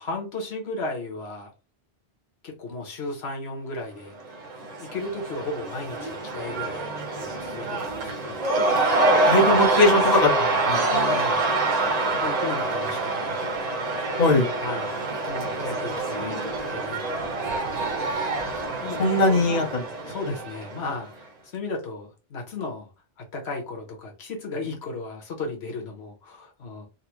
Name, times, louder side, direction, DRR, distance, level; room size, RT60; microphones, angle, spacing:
voice 1, 0.0-1.5 2.4-4.1 4.8-8.4 10.8-11.5 11.9-13.4 14.6-14.9 15.3-16.4 16.7-17.3 18.8-19.7 20.1-22.9 23.3-26.9, left 3 dB, 85° left, 1 dB, 1.2 m, -35 dB
Cheering / Crowd, 4.2-21.1, right 2 dB, 45° right, 0.8 m, -26 dB
voice 2, 9.3-10.8 14.2-14.5 19.0-19.8, left 2 dB, 45° left, -2 dB, 1.0 m, -20 dB
4.0 x 2.0 x 3.0 m, 0.30 s
omnidirectional pair, 1.1 m